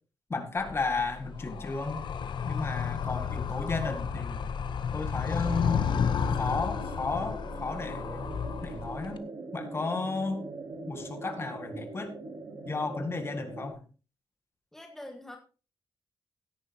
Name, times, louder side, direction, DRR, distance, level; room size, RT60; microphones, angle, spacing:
voice 1, 0.3-2.0 2.5-4.5 4.9-5.9 6.4-8.3 8.6-10.4 10.9-12.1 12.6-13.8, left 3 dB, 30° left, 6 dB, 1.9 m, -33 dB
Animal, 0.6-9.2, left 6 dB, 70° left, 1.0 m, -32 dB
sound 1, 5.4-13.7, right 3 dB, 50° right, 3.3 m, -42 dB
voice 2, 14.7-15.4, left 1 dB, 5° left, 3 dB, 1.5 m, -44 dB
17.0 x 9.7 x 2.9 m, 0.34 s
wide cardioid pair, 165°, 8 cm